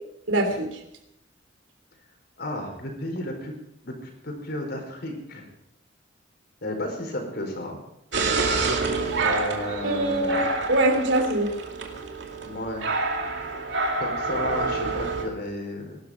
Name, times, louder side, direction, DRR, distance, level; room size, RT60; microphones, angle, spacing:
voice 1, 0.3-0.8 9.8-11.5, right 1 dB, 85° right, 5 dB, 3.2 m, -23 dB
voice 2, 2.4-3.5 3.8-5.5 6.6-7.8 9.2-10.5 12.4-13.0 13.6-16.0, left 1 dB, 60° left, 3 dB, 4.8 m, -33 dB
sound 1, 8.1-15.3, right 3 dB, 65° right, 2.6 m, -27 dB
21.5 x 12.0 x 5.1 m, 0.82 s
head